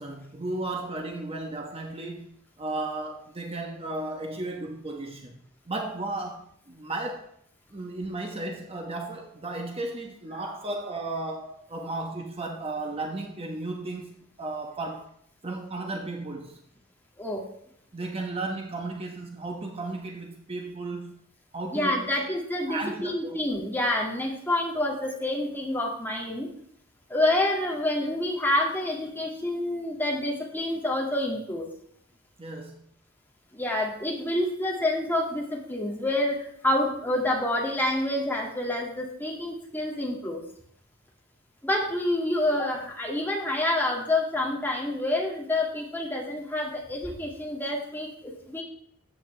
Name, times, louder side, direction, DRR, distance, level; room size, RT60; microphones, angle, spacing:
voice 1, 0.0-2.3 2.6-5.4 5.7-7.3 7.7-15.1 15.4-16.6 17.9-21.2 21.5-22.1 22.7-23.4 32.4-32.8, right 2 dB, 30° right, 1.0 m, -34 dB
voice 2, 21.7-26.5 27.1-31.7 33.5-40.4 41.6-48.6, left 1 dB, 10° left, 2.1 m, -28 dB
13.5 x 8.3 x 3.3 m
head